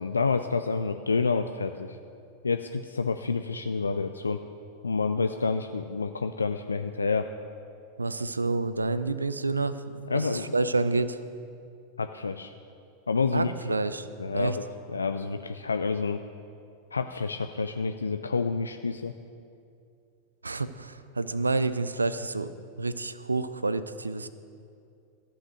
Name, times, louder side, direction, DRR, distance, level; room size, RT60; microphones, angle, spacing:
voice 1, 0.0-2.0 2.4-4.4 4.8-7.3 10.1-10.5 12.0-12.5 13.1-13.7 14.2-14.6 14.9-16.2 16.9-19.1, left 4 dB, 75° left, 8 dB, 0.3 m, -28 dB
voice 2, 8.0-11.2 13.3-14.6 20.4-22.5 22.8-24.3, right 3 dB, 80° right, 13 dB, 0.4 m, -29 dB
13.5 x 5.7 x 6.4 m, 2.5 s
figure-of-eight pair, 90°, 0 cm